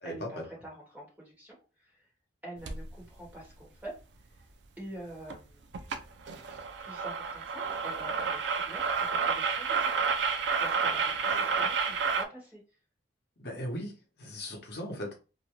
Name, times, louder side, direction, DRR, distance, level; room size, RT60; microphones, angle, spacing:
voice 1, 0.0-2.1 2.4-3.9 4.3-4.5 4.8-5.6 6.8-9.9 10.6-12.6, right 1 dB, 10° right, -3 dB, 1.1 m, -46 dB
sound 1, 2.7-2.9 5.3-5.4 5.7-6.0 6.3-12.2, right 5 dB, 70° right, 0.4 m, -30 dB
voice 2, 11.2-11.7 13.4-13.9 14.2-15.1, equal, 60° left, 0 dB, 0.8 m, -38 dB
2.6 x 2.2 x 2.8 m, 0.32 s
head